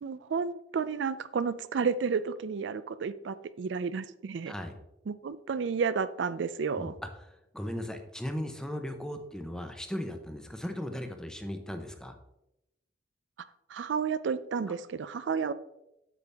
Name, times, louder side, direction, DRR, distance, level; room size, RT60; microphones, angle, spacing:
voice 1, 0.0-4.5 5.1-6.9 13.7-15.5, right 5 dB, 75° right, 15 dB, 0.4 m, -31 dB
voice 2, 7.5-12.1, equal, 5° left, 6 dB, 0.8 m, -37 dB
8.3 x 6.9 x 3.4 m, 0.88 s
head